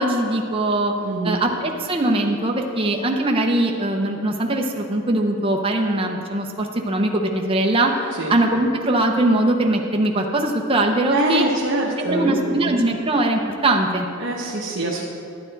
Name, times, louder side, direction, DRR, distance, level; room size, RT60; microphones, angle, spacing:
voice 1, 0.0-0.9 1.2-7.9 8.3-11.4 12.0-14.1, right 1 dB, 25° right, 1 dB, 0.7 m, -21 dB
voice 2, 1.0-1.4 8.2-8.3 11.1-12.7 14.2-15.0, right 1 dB, 60° right, -4 dB, 0.9 m, -24 dB
12.0 x 8.8 x 4.0 m, 2.6 s
head